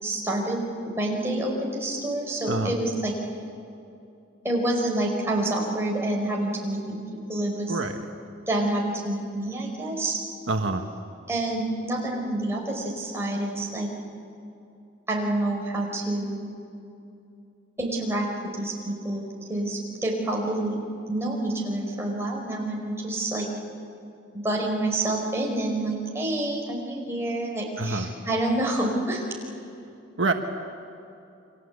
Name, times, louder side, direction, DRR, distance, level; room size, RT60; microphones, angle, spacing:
voice 1, 0.0-3.1 4.4-7.0 7.3-7.8 8.5-10.2 11.3-13.9 15.1-16.5 17.8-18.3 18.5-19.2 19.5-20.8 21.1-23.5 24.3-29.2, right 1 dB, 15° right, -2 dB, 4.8 m, -28 dB
voice 2, 7.7-8.0 10.5-10.9 27.8-28.1 30.2-30.3, right 2 dB, 70° right, 4 dB, 1.4 m, -26 dB
29.5 x 24.5 x 8.3 m, 2.7 s
head